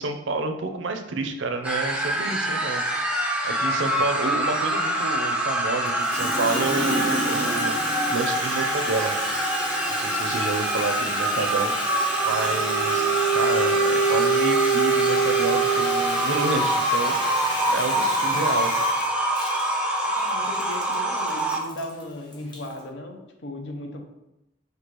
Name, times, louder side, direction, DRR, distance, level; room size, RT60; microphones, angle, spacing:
voice 1, 0.0-2.8 3.4-7.8 8.1-9.1 9.9-11.7 12.2-17.1 17.7-18.7, right 3 dB, 75° right, 6 dB, 0.5 m, -29 dB
sound 1, 1.6-21.6, right 1 dB, 5° right, 0.4 m, -25 dB
Water tap faucet, 5.9-22.8, left 1 dB, 25° left, 0.7 m, -32 dB
Wind instrument woodwind instrument, 12.1-16.5, right 5 dB, 85° left, 1.5 m, -24 dB
voice 2, 20.1-24.0, left 1 dB, 70° left, 3 dB, 0.7 m, -36 dB
6.0 x 2.7 x 3.0 m, 0.90 s
head